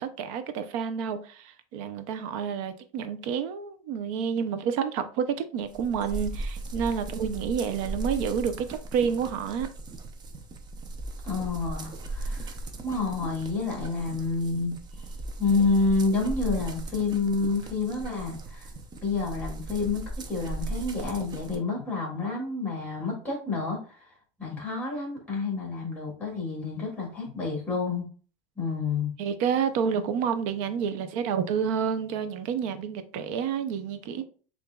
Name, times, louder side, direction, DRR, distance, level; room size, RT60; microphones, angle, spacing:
voice 1, 0.0-9.7 29.2-34.2, right 7 dB, 70° right, 0.6 m, -29 dB
sound 1, 5.7-21.6, right 2 dB, 25° right, 0.5 m, -37 dB
voice 2, 11.2-12.6 12.8-14.7 15.4-18.7 19.0-24.1 24.4-28.1 28.6-29.1, left 3 dB, 10° left, 1.8 m, -29 dB
6.7 x 2.5 x 2.3 m
supercardioid pair, 150°, 18 cm